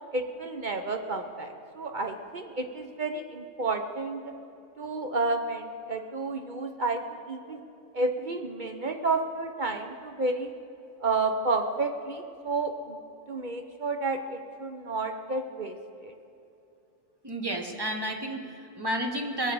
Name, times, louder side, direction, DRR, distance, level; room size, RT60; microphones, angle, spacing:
voice 1, 0.1-4.3 4.8-7.6 7.9-10.5 11.0-13.0 13.3-15.7 16.0-16.1, right 3 dB, 50° right, 5 dB, 0.6 m, -31 dB
voice 2, 17.2-19.5, right 1 dB, 20° right, 3 dB, 0.9 m, -31 dB
20.5 x 7.4 x 6.8 m, 2.8 s
omnidirectional pair, 1.6 m